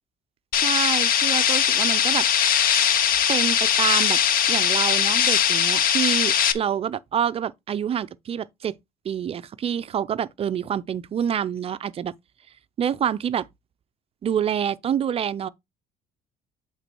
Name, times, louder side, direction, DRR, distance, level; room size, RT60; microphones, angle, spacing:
sound 1, 0.5-6.5, left 9 dB, 50° left, 1.0 m, -20 dB
voice 1, 0.5-2.3 3.3-4.2 4.5-8.7 9.0-12.1 12.8-13.5 14.2-15.5, right 9 dB, 30° right, 0.4 m, -27 dB
8.1 x 4.0 x 4.5 m
cardioid pair, 145°, 19 cm